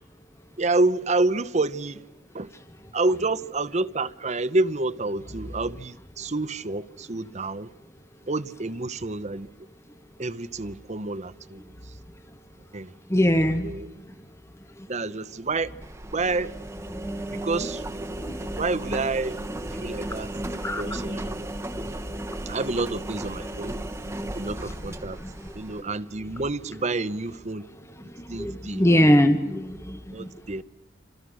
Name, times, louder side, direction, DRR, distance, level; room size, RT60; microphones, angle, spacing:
voice 1, 0.6-2.0 2.3-2.5 2.9-7.7 8.3-9.5 10.2-11.6 12.7-12.9 13.6-13.9 14.9-15.7 16.1-16.5 17.4-17.8 18.6-19.4 19.8-20.3 20.8-21.5 22.5-23.7 24.3-25.2 25.5-27.7 28.3-28.8 30.1-30.6, right 3 dB, 35° right, 0.9 m, -28 dB
voice 2, 13.1-13.7 18.2-18.4 20.6-21.0 28.4-30.0, equal, 15° left, 1.1 m, -21 dB
Engine, 15.8-25.8, right 1 dB, 15° right, 1.3 m, -35 dB
29.5 x 26.5 x 6.3 m
head